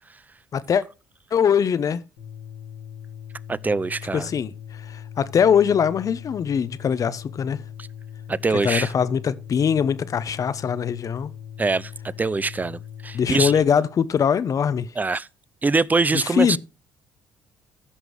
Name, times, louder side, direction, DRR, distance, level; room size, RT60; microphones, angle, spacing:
voice 1, 0.5-0.8 1.3-2.0 4.1-7.6 8.5-11.3 13.1-14.9 16.1-16.6, left 7 dB, 50° left, 0.8 m, -22 dB
sound 1, 2.2-13.6, left 8 dB, 85° left, 2.1 m, -40 dB
voice 2, 3.5-4.3 8.3-8.9 11.6-13.5 15.0-15.3 15.6-16.6, right 3 dB, 20° right, 0.5 m, -23 dB
15.5 x 6.2 x 3.1 m
hypercardioid pair, 60°, 8 cm